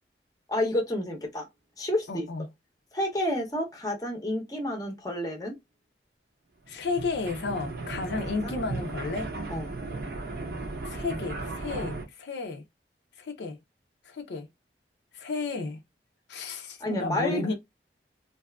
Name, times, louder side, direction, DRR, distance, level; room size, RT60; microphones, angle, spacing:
voice 1, 0.5-1.5 1.8-2.3 2.9-5.6 8.4-8.6 9.5-9.7 16.8-17.5, left 1 dB, 20° left, 0.6 m, -30 dB
voice 2, 2.1-2.4 6.7-9.3 10.8-12.6 13.2-13.6 14.1-14.5 15.1-15.8 16.3-17.5, left 3 dB, 70° left, 0.5 m, -32 dB
sound 1, 6.7-12.0, right 2 dB, 55° right, 0.6 m, -36 dB
2.6 x 2.3 x 2.2 m
head